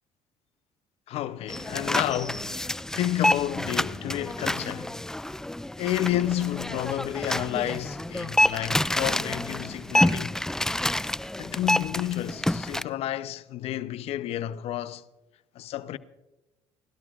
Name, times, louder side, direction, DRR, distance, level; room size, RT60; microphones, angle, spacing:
voice 1, 1.1-5.0 5.8-10.4 11.4-15.0 15.5-16.0, left 13 dB, 65° left, 0.6 m, -31 dB
sound 1, 1.5-12.8, left 1 dB, 5° left, 0.3 m, -28 dB
29.5 x 12.5 x 2.5 m
supercardioid pair, 85°, 11 cm